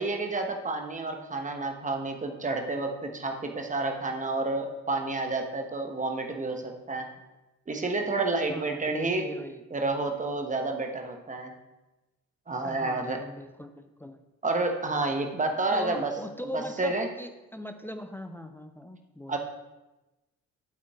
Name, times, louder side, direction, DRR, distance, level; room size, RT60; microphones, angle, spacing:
voice 1, 0.0-7.1 7.7-9.2 9.7-11.5 12.5-13.2 14.4-16.1 16.5-17.1 19.3-19.4, right 3 dB, 15° right, 3 dB, 1.1 m, -30 dB
voice 2, 8.5-9.6 12.6-14.2 15.7-19.4, left 1 dB, 5° left, 8 dB, 0.5 m, -40 dB
10.5 x 8.1 x 2.4 m, 1.0 s
figure-of-eight pair, 40°, 43 cm